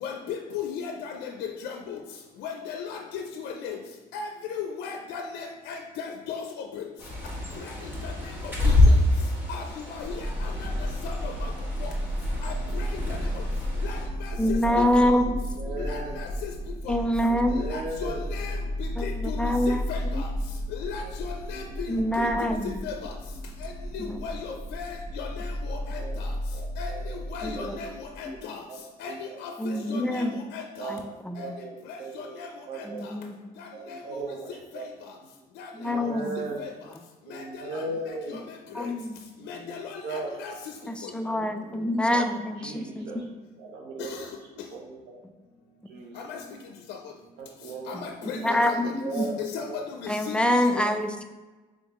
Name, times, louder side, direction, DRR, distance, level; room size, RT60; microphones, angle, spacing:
voice 1, 0.0-2.0 2.4-3.8 4.1-6.8 7.6-9.0 9.5-11.5 11.8-11.9 12.4-13.4 13.8-15.1 15.8-16.5 16.8-16.9 17.5-20.3 20.7-23.1 23.6-26.3 26.8-28.6 29.0-30.9 31.4-31.5 31.9-32.5 32.8-33.1 33.6-34.0 34.7-34.8 35.6-35.9 36.6-36.7 37.3-38.9 39.5-40.5 41.0-41.1 44.0-44.3 46.1-46.4 46.9-47.0 47.9-49.1 49.4-50.9, left 6 dB, 80° left, 3 dB, 0.4 m, -37 dB
Bird, 7.0-14.1, left 2 dB, 10° right, 1.3 m, -26 dB
sound 1, 10.0-28.4, equal, 50° right, 0.7 m, -33 dB
voice 2, 14.4-15.4 16.9-17.7 19.0-19.8 20.1-20.2 21.9-22.8 24.0-24.2 27.4-27.7 28.3-28.4 29.6-30.4 30.9-31.5 32.9-33.3 35.8-36.4 38.7-39.2 40.9-43.2 47.9-49.3 50.1-51.2, left 1 dB, 5° left, 6 dB, 0.3 m, -26 dB
voice 3, 15.5-16.3 17.3-18.2 21.0-21.1 21.5-21.7 24.1-24.6 26.0-26.2 26.5-27.2 27.5-27.7 28.7-29.4 29.7-30.0 30.8-31.1 31.3-32.4 32.7-33.0 33.7-34.9 35.8-36.6 37.2-38.3 39.5-39.8 40.0-40.3 41.3-42.2 42.6-43.2 43.6-44.2 44.7-45.2 45.9-46.2 47.4-47.9 48.4-48.6 49.0-49.4 49.6-49.8, right 3 dB, 85° right, 0 dB, 0.8 m, -38 dB
3.6 x 3.4 x 3.6 m, 1.2 s
cardioid pair, 110°, 17 cm